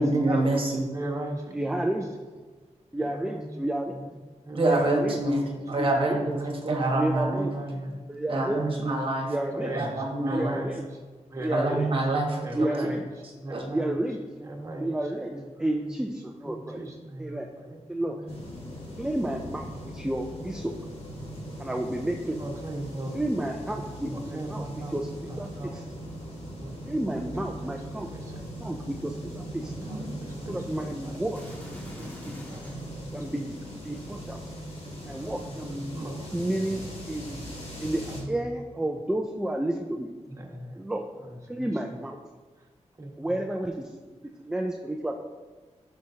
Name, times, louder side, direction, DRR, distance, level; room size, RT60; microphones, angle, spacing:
voice 1, 0.0-0.8 4.5-7.4 8.3-9.3 9.7-10.6 11.5-12.7 13.5-13.6, right 2 dB, 45° right, 0 dB, 1.3 m, -26 dB
voice 2, 0.9-2.0 3.0-3.5 3.9-4.1 4.4-6.4 7.3-8.8 9.3-10.8 11.3-11.8 12.4-13.0 13.4-14.0 14.4-16.1 16.4-18.4 19.7-19.8 22.3-23.2 23.7-25.0 25.3-25.8 26.6-27.3 27.9-28.4 29.2-29.3 29.6-31.2 32.5-33.1 33.9-34.2 35.0-35.1 35.5-36.4 37.3-37.4 38.1-38.4 40.3-40.8 41.2-41.7 42.6-42.7 43.0-43.6, right 1 dB, 25° right, 0 dB, 1.4 m, -38 dB
voice 3, 1.5-2.1 2.9-3.9 4.6-5.2 5.8-6.2 6.9-7.5 8.1-8.6 9.2-9.7 10.3-10.8 11.4-11.9 12.5-13.0 13.7-14.2 14.8-15.3 15.6-16.8 17.2-17.5 17.9-18.2 19.0-20.7 21.6-22.4 23.1-24.6 24.9-25.1 25.4-25.7 26.8-29.7 30.5-31.4 32.0-32.5 33.1-33.5 33.8-34.4 35.0-36.1 36.3-36.8 37.1-37.5 37.8-38.0 38.3-40.1 40.8-41.1 41.5-42.2 43.2-43.9 44.5-45.1, right 1 dB, 5° right, 2 dB, 0.4 m, -31 dB
sound 1, 18.3-38.2, equal, 60° left, 2.3 m, -40 dB
sound 2, 31.3-33.0 33.7-35.1 35.9-36.1, equal, 15° left, 1.9 m, -47 dB
12.0 x 6.4 x 2.8 m, 1.4 s
wide cardioid pair, 125°, 12 cm